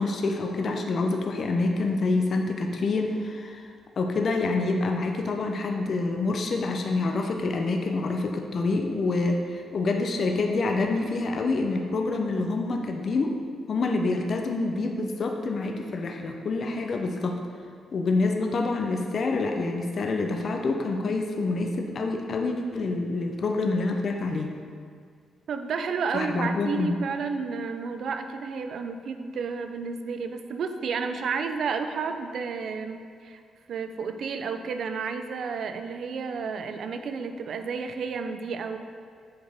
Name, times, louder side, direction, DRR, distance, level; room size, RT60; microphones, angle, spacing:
voice 1, 0.0-13.4 13.7-17.4 17.9-24.5 26.1-26.9, left 3 dB, 40° left, 2 dB, 0.5 m, -27 dB
voice 2, 25.5-33.4 33.7-38.8, right 5 dB, 55° right, 7 dB, 0.4 m, -31 dB
7.6 x 4.4 x 3.4 m, 2.1 s
cardioid pair, 155°, 0 cm